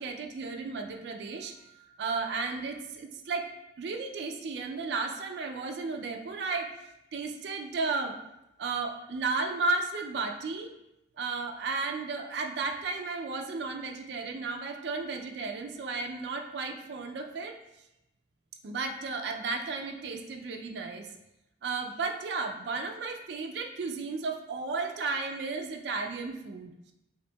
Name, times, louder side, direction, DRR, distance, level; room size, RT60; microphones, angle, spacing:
voice 1, 0.0-3.5 3.8-6.7 7.1-8.2 8.6-10.7 11.2-17.6 18.6-21.1 21.6-26.9, right 4 dB, 65° right, 3 dB, 0.4 m, -34 dB
5.6 x 2.6 x 2.2 m, 0.89 s
head